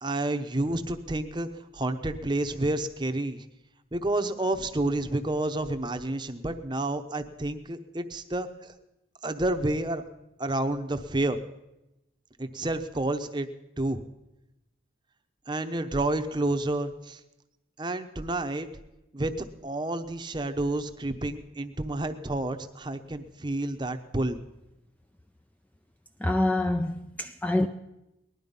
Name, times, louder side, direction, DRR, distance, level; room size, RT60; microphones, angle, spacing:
voice 1, 0.0-3.4 3.9-8.7 9.2-10.0 10.4-11.4 12.4-13.5 13.8-14.0 15.5-17.2 17.8-18.7 19.1-24.4, right 2 dB, 25° right, 0.8 m, -30 dB
voice 2, 26.2-27.7, left 1 dB, 10° left, 0.4 m, -26 dB
19.5 x 11.5 x 5.4 m
head